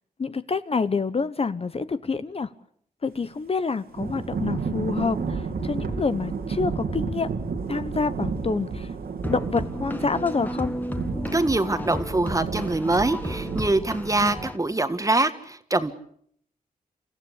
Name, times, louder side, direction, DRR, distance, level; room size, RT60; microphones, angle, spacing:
voice 1, 0.2-2.5 3.0-7.3 7.7-8.9 9.3-10.7 14.2-14.3, left 4 dB, 40° left, 13 dB, 0.9 m, -27 dB
Thunder / Rain, 4.0-14.5, right 5 dB, 85° right, 2.8 m, -32 dB
sound 1, 9.2-14.6, left 1 dB, 10° left, 1.8 m, -33 dB
voice 2, 11.3-16.0, right 2 dB, 20° right, 10 dB, 1.6 m, -24 dB
29.0 x 15.0 x 8.2 m, 0.67 s
cardioid pair, 85°, 15 cm